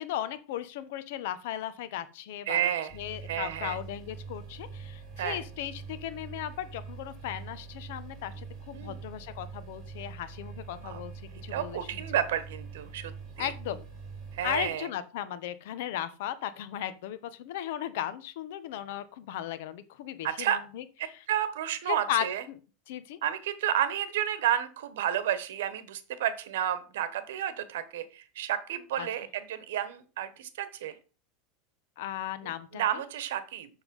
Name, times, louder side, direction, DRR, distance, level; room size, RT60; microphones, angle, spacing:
voice 1, 0.0-11.1 11.4-12.0 13.4-13.8 14.4-21.2 21.9-22.6 22.9-23.2 29.0-29.1 32.0-33.0, left 11 dB, 70° left, 13 dB, 1.1 m, -36 dB
voice 2, 2.5-3.0 3.3-3.8 5.2-5.4 8.7-9.0 10.8-11.0 11.5-13.1 13.4-13.5 14.3-14.9 20.2-20.6 21.0-22.4 23.2-30.9 32.7-33.7, right 11 dB, 85° right, 14 dB, 1.3 m, -31 dB
sound 1, 2.9-14.7, right 5 dB, 25° right, 3.8 m, -44 dB
7.4 x 6.8 x 5.4 m, 0.35 s
supercardioid pair, 160°, 0 cm